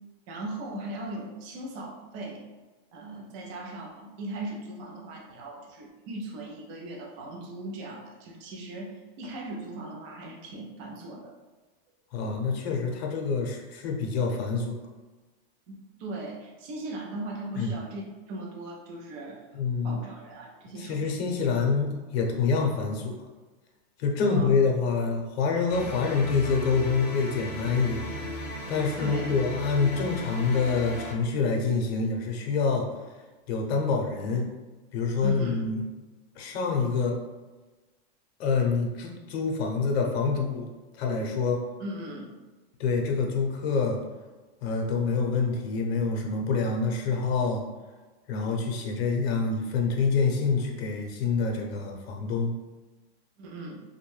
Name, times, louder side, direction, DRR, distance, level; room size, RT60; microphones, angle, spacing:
voice 1, 0.3-2.4 2.9-11.3 12.2-12.3 15.7-18.0 18.3-21.5 24.2-24.5 29.0-29.3 35.2-35.7 41.8-42.3 53.4-53.8, right 1 dB, 35° right, -1 dB, 0.4 m, -38 dB
voice 2, 12.1-14.8 17.5-17.7 19.5-20.0 20.8-23.1 24.0-28.0 28.7-32.9 33.5-34.5 34.9-35.8 36.4-37.2 38.4-40.7 41.0-41.6 42.8-44.0 44.6-47.6 48.3-52.5, left 4 dB, 75° left, 1 dB, 0.7 m, -26 dB
sound 1, 25.7-31.1, left 1 dB, 40° left, 0.6 m, -37 dB
2.5 x 2.2 x 3.1 m, 1.2 s
supercardioid pair, 170°, 31 cm